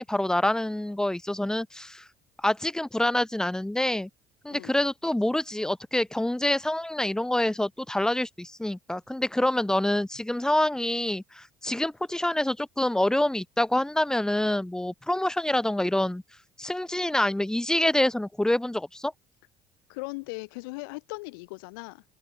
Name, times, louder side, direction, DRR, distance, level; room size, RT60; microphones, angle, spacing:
voice 1, 0.0-2.0 2.4-4.1 4.4-16.2 16.6-19.1, left 1 dB, 5° left, 1.2 m, -26 dB
voice 2, 19.9-22.0, left 27 dB, 85° left, 2.2 m, -38 dB
open air
supercardioid pair, 75°, 11 cm